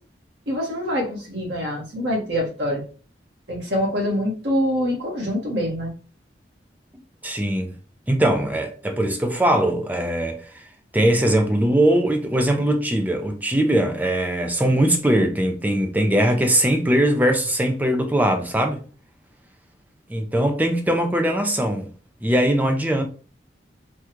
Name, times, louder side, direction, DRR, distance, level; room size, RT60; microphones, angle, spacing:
voice 1, 0.5-2.8 3.5-5.9, equal, 85° right, 1.5 m, -25 dB
voice 2, 7.2-7.7 8.1-10.4 10.9-18.8 20.1-21.9 22.2-23.0, right 1 dB, 10° right, 0.4 m, -21 dB
3.5 x 2.3 x 3.0 m
head